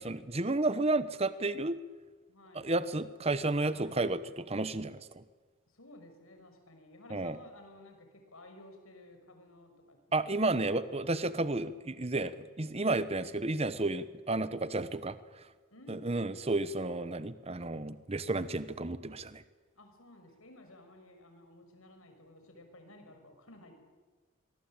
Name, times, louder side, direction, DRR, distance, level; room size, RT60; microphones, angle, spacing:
voice 1, 0.0-1.8 2.5-5.2 7.1-7.4 10.1-15.2 15.9-19.4, right 2 dB, 30° right, 14 dB, 1.0 m, -32 dB
voice 2, 2.3-2.8 3.7-4.1 5.7-10.0 10.3-11.3 15.7-16.9 19.7-23.7, left 1 dB, 85° left, 6 dB, 6.1 m, -55 dB
25.0 x 23.0 x 8.9 m, 1.4 s
head